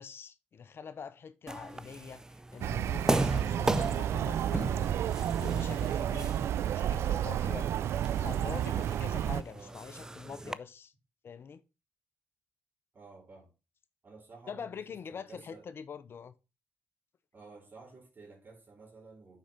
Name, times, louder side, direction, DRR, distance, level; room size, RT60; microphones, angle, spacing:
voice 1, 0.0-2.2 2.5-4.9 5.3-10.9 11.2-11.6 14.5-16.3, left 6 dB, 60° left, 0.8 m, -45 dB
sound 1, 1.5-10.5, right 1 dB, 15° right, 0.5 m, -37 dB
sound 2, 2.6-9.4, right 10 dB, 75° right, 0.4 m, -31 dB
voice 2, 9.5-9.8 12.9-13.5 14.0-15.7 17.3-19.4, right 3 dB, 45° right, 4.0 m, -53 dB
6.4 x 5.6 x 5.1 m
supercardioid pair, 55°, 5 cm